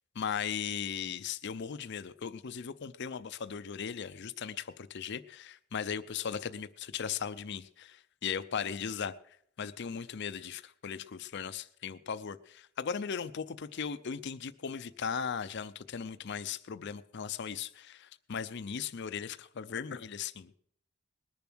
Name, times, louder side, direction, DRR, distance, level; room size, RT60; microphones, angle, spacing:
voice 1, 0.2-20.6, left 7 dB, 55° left, 0.5 m, -38 dB
20.0 x 7.0 x 6.1 m
head